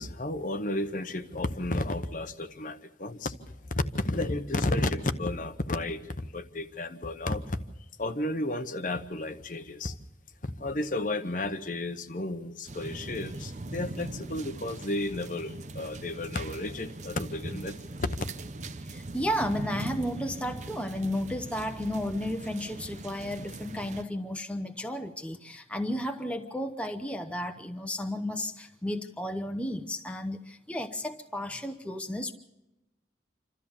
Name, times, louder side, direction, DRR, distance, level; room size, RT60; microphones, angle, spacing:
voice 1, 0.0-7.6 8.0-10.0 10.4-18.3, left 2 dB, 45° left, 9 dB, 0.9 m, -32 dB
sound 1, 12.7-24.0, right 2 dB, 40° right, 0.7 m, -41 dB
voice 2, 18.8-32.3, left 1 dB, 5° left, 5 dB, 0.9 m, -33 dB
27.5 x 13.5 x 7.1 m, 0.99 s
head